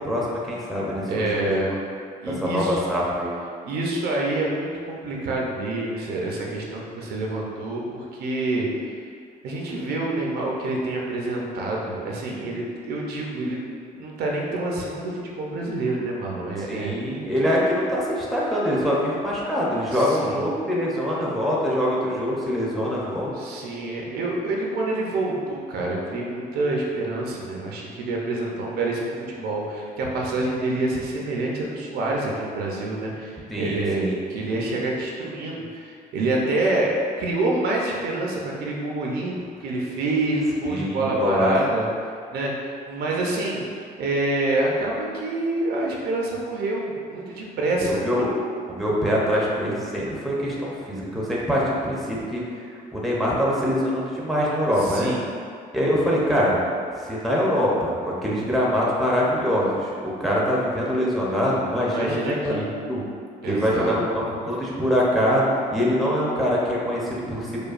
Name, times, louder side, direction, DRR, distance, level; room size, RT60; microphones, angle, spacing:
voice 1, 0.0-1.6 2.4-3.3 16.7-23.3 33.5-34.2 40.7-41.5 47.8-48.3 48.7-52.6 52.9-55.1 55.7-56.6 57.0-62.6 62.9-63.0 63.4-67.7, equal, ahead, -5 dB, 0.7 m, -24 dB
voice 2, 1.1-1.8 2.2-2.8 3.6-9.1 9.4-13.7 13.9-16.9 19.9-20.5 23.3-41.9 42.3-48.3 54.8-55.3 61.8-62.7 63.4-64.0, right 2 dB, 70° right, -2 dB, 0.6 m, -27 dB
4.9 x 2.2 x 2.5 m, 2.2 s
cardioid pair, 110°, 17 cm